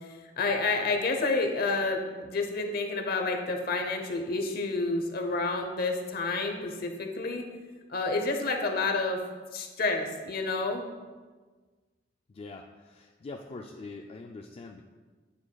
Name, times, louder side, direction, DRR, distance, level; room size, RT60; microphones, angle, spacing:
voice 1, 0.0-7.4 7.9-9.2 9.5-10.8, left 3 dB, 55° left, 4 dB, 0.8 m, -29 dB
voice 2, 12.3-14.9, left 3 dB, 35° left, 2 dB, 0.3 m, -43 dB
8.4 x 7.3 x 2.3 m, 1.4 s
head